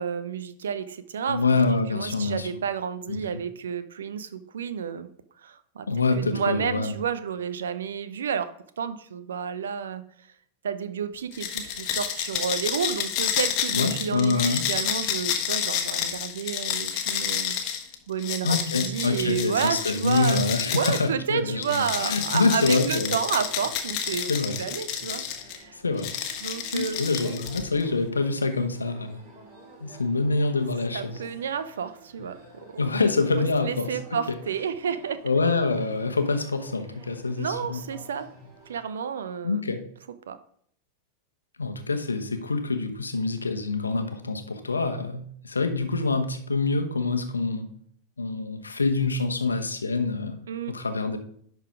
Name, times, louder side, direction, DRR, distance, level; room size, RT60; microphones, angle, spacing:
voice 1, 0.0-1.6 1.9-5.1 5.4-5.9 6.1-8.5 8.8-10.0 10.6-17.6 18.1-25.2 25.5-25.8 26.4-27.4 30.9-32.9 33.6-35.2 37.4-38.3 38.7-39.6 40.3-40.4 50.5-50.7, right 7 dB, 65° right, 12 dB, 0.6 m, -31 dB
voice 2, 1.3-2.5 3.1-3.4 5.9-7.0 13.7-14.6 18.4-21.6 22.0-23.2 24.3-24.6 25.8-26.1 26.7-29.2 29.8-31.2 32.8-33.9 34.3-34.4 35.2-37.8 39.4-39.8 41.6-47.7 48.2-50.4 50.7-51.2, left 3 dB, 75° left, 6 dB, 1.0 m, -26 dB
sound 1, 11.3-21.1 21.6-25.6 26.0-27.8, left 9 dB, 40° left, 1.2 m, -30 dB
sound 2, 21.8-38.8, equal, 50° right, 3.8 m, -50 dB
10.5 x 4.0 x 5.0 m, 0.63 s
figure-of-eight pair, 90°, 0 cm